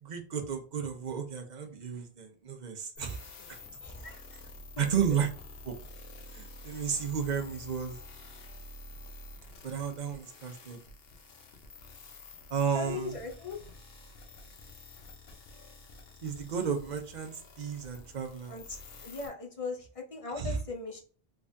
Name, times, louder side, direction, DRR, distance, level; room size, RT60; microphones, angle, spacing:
voice 1, 0.0-3.3 4.8-5.3 5.6-5.8 6.3-8.0 9.6-10.8 12.5-13.2 16.2-18.6 20.3-20.6, right 7 dB, 50° right, 5 dB, 0.7 m, -33 dB
sound 1, 3.0-19.3, left 2 dB, 70° left, 1.0 m, -49 dB
voice 2, 3.8-4.4 4.8-4.9 12.7-13.6 18.5-18.6 19.0-21.0, left 4 dB, 35° left, 2 dB, 0.8 m, -39 dB
3.4 x 3.3 x 2.6 m, 0.41 s
omnidirectional pair, 1.1 m